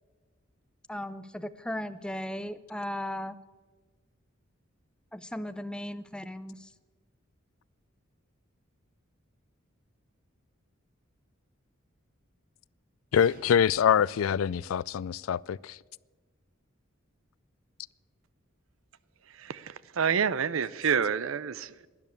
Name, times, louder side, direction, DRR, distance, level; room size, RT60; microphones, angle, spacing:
voice 1, 0.9-3.4 5.1-6.7, left 1 dB, 5° left, 0.5 m, -36 dB
voice 2, 13.1-15.8, left 8 dB, 85° left, 0.3 m, -25 dB
sound 1, 13.2-14.2, right 2 dB, 45° right, 1.8 m, -53 dB
voice 3, 19.3-21.9, right 7 dB, 85° right, 0.6 m, -28 dB
12.0 x 11.0 x 8.5 m
head